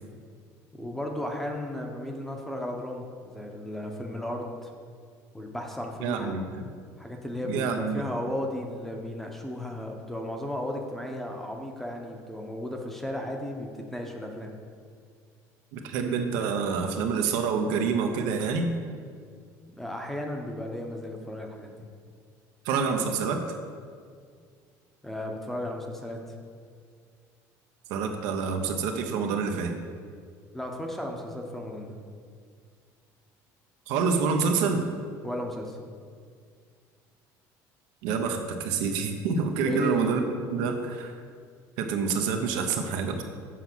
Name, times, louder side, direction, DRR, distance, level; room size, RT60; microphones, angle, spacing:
voice 1, 0.8-4.7 5.3-6.4 7.0-14.5 19.7-21.8 25.0-26.2 30.5-31.9 35.2-35.8 39.6-40.0, left 1 dB, 5° left, 2 dB, 0.8 m, -34 dB
voice 2, 6.0-6.4 7.5-8.0 15.7-18.7 22.6-23.5 27.9-29.7 33.9-34.9 38.0-40.2 40.5-41.1 41.8-43.2, right 5 dB, 80° right, 4 dB, 0.9 m, -27 dB
7.5 x 5.8 x 6.1 m, 2.1 s
cardioid pair, 160°, 7 cm